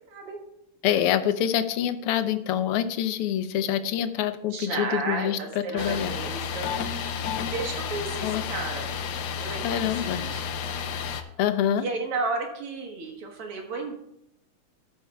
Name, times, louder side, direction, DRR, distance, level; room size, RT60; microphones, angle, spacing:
voice 1, 0.1-0.4 0.9-1.0 4.5-7.1 7.5-8.9 9.4-10.6 11.8-13.9, right 3 dB, 85° right, 2 dB, 2.5 m, -33 dB
voice 2, 0.8-5.4 5.7-6.2 8.2-8.4 9.6-10.2 11.4-11.8, left 10 dB, 90° left, 11 dB, 1.6 m, -26 dB
sound 1, 5.8-11.2, left 7 dB, 70° left, 1.0 m, -31 dB
14.0 x 5.6 x 3.4 m, 0.76 s
omnidirectional pair, 2.4 m